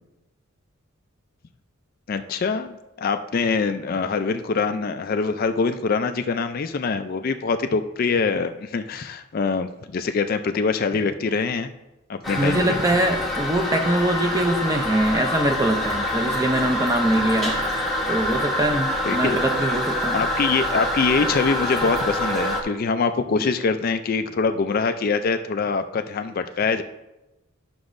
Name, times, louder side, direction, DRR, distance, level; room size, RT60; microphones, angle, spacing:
voice 1, 2.1-11.7 12.1-12.8 19.0-19.5 20.1-26.8, left 4 dB, 40° left, 9 dB, 0.3 m, -24 dB
Toilet flush, 12.2-22.6, equal, ahead, 0.9 m, -26 dB
voice 2, 12.4-17.6 18.1-20.2, right 1 dB, 15° right, 5 dB, 0.5 m, -23 dB
11.0 x 6.1 x 2.6 m, 0.97 s
head